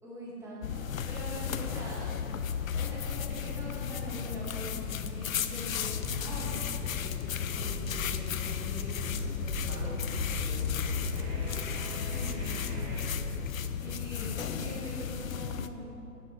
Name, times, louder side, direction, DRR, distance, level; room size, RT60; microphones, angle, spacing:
voice 1, 0.0-2.1 2.7-7.2 7.5-9.0 9.4-10.1 12.0-13.0 13.8-15.9, equal, 5° right, -8 dB, 1.8 m, -43 dB
sound 1, 0.6-15.7, left 8 dB, 55° left, 0.6 m, -34 dB
voice 2, 1.8-2.1 9.7-11.8, right 1 dB, 60° right, 0 dB, 1.7 m, -48 dB
sound 2, 5.9-13.1, left 2 dB, 25° right, 2.1 m, -38 dB
8.6 x 6.8 x 6.1 m, 2.9 s
hypercardioid pair, 140°, 49 cm